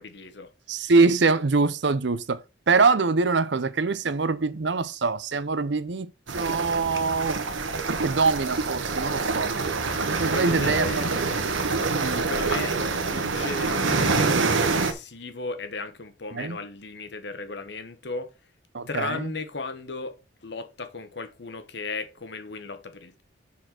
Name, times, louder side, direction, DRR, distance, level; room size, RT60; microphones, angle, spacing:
voice 1, 0.0-0.5 9.8-11.6 12.1-18.3 18.9-23.2, left 3 dB, 60° left, 1.1 m, -36 dB
voice 2, 0.7-2.4 2.7-6.1 6.3-7.4 7.9-9.5 10.0-11.0 11.9-12.3 16.3-16.6 18.7-19.3, right 4 dB, 60° right, 0.7 m, -24 dB
sound 1, 6.3-14.9, right 4 dB, 80° right, 1.3 m, -26 dB
7.3 x 4.3 x 5.9 m
head